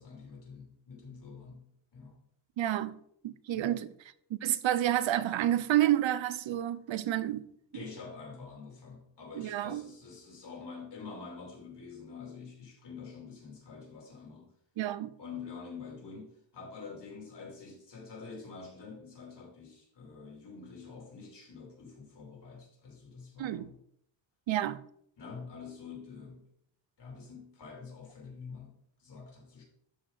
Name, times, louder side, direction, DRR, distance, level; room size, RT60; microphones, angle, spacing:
voice 1, 0.0-2.2 3.5-3.8 7.7-14.5 15.2-23.8 25.2-26.4 27.0-29.6, left 5 dB, 60° left, 3.2 m, -47 dB
voice 2, 2.6-3.0 3.2-3.9 4.3-7.4 9.4-9.8 14.8-15.1 23.4-23.7 24.5-24.8, right 12 dB, 75° right, 0.6 m, -29 dB
12.5 x 4.7 x 4.0 m
wide cardioid pair, 165°, 46 cm